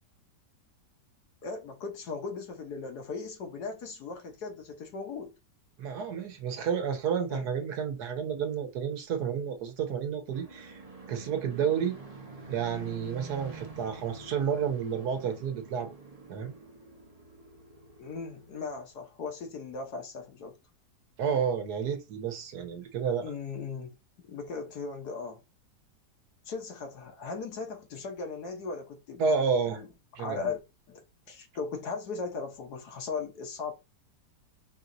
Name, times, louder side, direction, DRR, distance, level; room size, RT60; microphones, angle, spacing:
voice 1, 1.4-5.3 7.3-7.5 18.0-20.6 23.2-24.0 24.2-25.4 26.5-29.2 29.7-29.9 30.2-30.6 30.9-33.7, left 4 dB, 65° left, 1.5 m, -38 dB
voice 2, 5.8-10.8 11.1-12.0 12.5-15.9 16.3-16.5 21.2-23.3 29.2-29.8 30.2-30.5, right 7 dB, 70° right, 1.3 m, -30 dB
sound 1, 10.3-18.8, right 2 dB, 30° right, 0.8 m, -47 dB
4.6 x 2.9 x 2.6 m
omnidirectional pair, 1.9 m